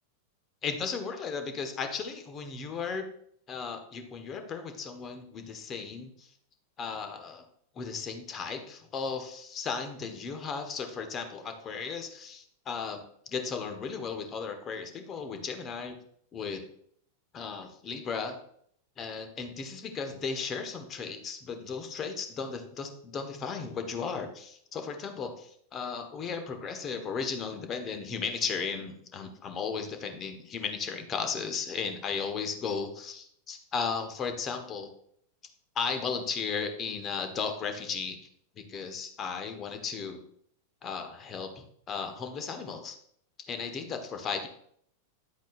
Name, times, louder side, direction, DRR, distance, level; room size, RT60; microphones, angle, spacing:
voice 1, 0.6-3.0 3.5-6.3 6.8-7.4 7.7-16.0 16.3-16.6 17.3-18.4 19.0-34.9 35.7-38.2 38.5-40.2 40.8-43.0 43.5-44.5, left 5 dB, 25° left, 6 dB, 1.4 m, -35 dB
10.5 x 8.1 x 2.5 m, 0.67 s
figure-of-eight pair, 90°, 0 cm